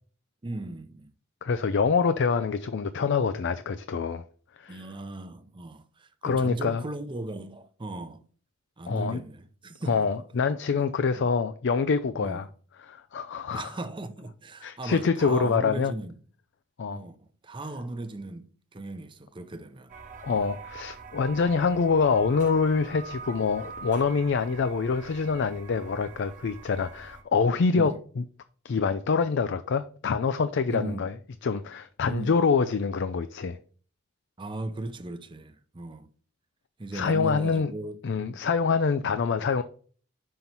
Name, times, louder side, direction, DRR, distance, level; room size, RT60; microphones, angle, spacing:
voice 1, 0.4-1.1 4.7-8.2 8.8-10.1 11.2-11.3 12.2-12.4 13.5-16.2 16.9-19.9 20.3-20.5 27.7-28.0 30.7-31.1 32.1-32.3 34.4-36.1 36.8-38.4, right 2 dB, 25° right, 0.6 m, -37 dB
voice 2, 1.4-4.2 4.6-4.8 6.2-6.8 8.9-9.2 9.9-12.5 12.9-13.7 14.6-15.9 16.8-17.0 20.2-28.2 28.6-31.1 31.4-33.6 36.9-37.7 38.0-39.6, left 5 dB, 60° left, 0.4 m, -25 dB
sound 1, 19.9-27.2, right 5 dB, 40° right, 1.3 m, -44 dB
5.6 x 5.4 x 4.4 m
head